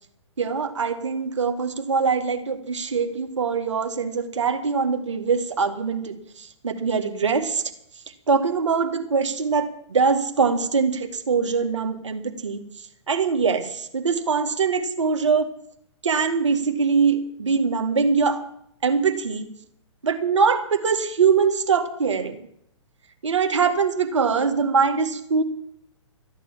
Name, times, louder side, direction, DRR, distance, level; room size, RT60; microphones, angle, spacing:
voice 1, 0.4-6.2 6.6-7.6 8.3-12.6 13.1-15.5 16.0-18.4 18.8-19.5 20.0-22.4 23.2-25.4, right 5 dB, 70° right, 6 dB, 2.0 m, -22 dB
14.0 x 9.4 x 7.6 m, 0.70 s
figure-of-eight pair, 120°, 16 cm